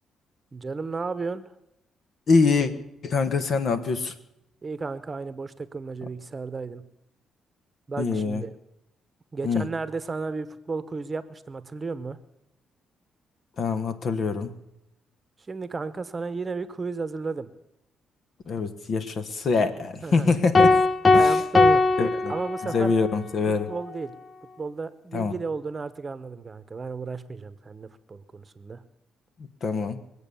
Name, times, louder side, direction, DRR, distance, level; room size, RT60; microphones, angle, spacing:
voice 1, 0.5-1.4 4.6-6.8 7.9-8.5 9.3-12.2 15.5-17.5 20.0-20.3 21.1-21.9 22.3-22.9 23.5-24.1 24.6-28.8, right 4 dB, 30° right, 13 dB, 1.0 m, -33 dB
voice 2, 2.3-2.7 3.0-4.1 8.0-8.4 9.4-9.6 13.6-14.5 18.5-20.8 21.1-21.3 22.0-22.3 22.7-23.7 25.1-25.3 29.6-30.0, left 4 dB, 55° left, 10 dB, 1.4 m, -24 dB
sound 1, 20.5-23.0, left 3 dB, 30° left, 0.6 m, -19 dB
22.5 x 8.3 x 7.0 m, 0.84 s
cardioid pair, 90°, 0 cm